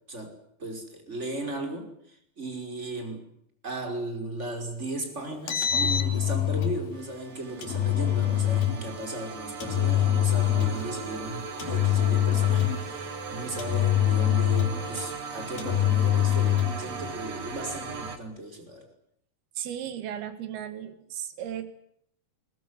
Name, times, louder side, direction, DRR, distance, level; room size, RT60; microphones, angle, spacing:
voice 1, 0.1-3.2 3.6-18.9, right 2 dB, 15° right, 5 dB, 5.7 m, -36 dB
Engine, 5.3-6.8 7.6-8.8 9.6-10.9 11.6-12.9 13.6-14.9 15.6-16.8, left 11 dB, 70° left, 4.1 m, -24 dB
sound 1, 6.9-18.2, right 4 dB, 50° right, 3.2 m, -38 dB
voice 2, 19.6-21.7, right 10 dB, 90° right, 11 dB, 3.8 m, -35 dB
23.0 x 21.0 x 9.9 m, 0.70 s
omnidirectional pair, 4.3 m